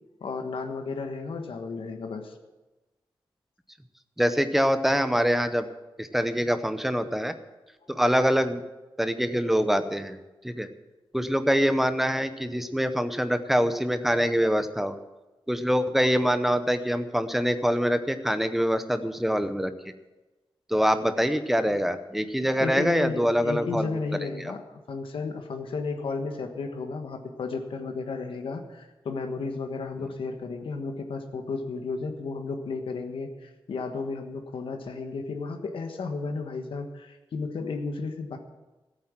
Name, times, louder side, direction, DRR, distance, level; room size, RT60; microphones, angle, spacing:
voice 1, 0.2-2.4 22.6-38.4, left 4 dB, 75° left, 5 dB, 1.4 m, -33 dB
voice 2, 4.2-5.7 6.0-7.4 7.9-8.6 9.0-10.2 10.4-10.7 11.1-15.0 15.5-19.7 20.7-24.0 24.4-24.5, equal, 5° right, 10 dB, 0.8 m, -24 dB
15.0 x 8.8 x 7.4 m, 1.1 s
wide cardioid pair, 170°, 9 cm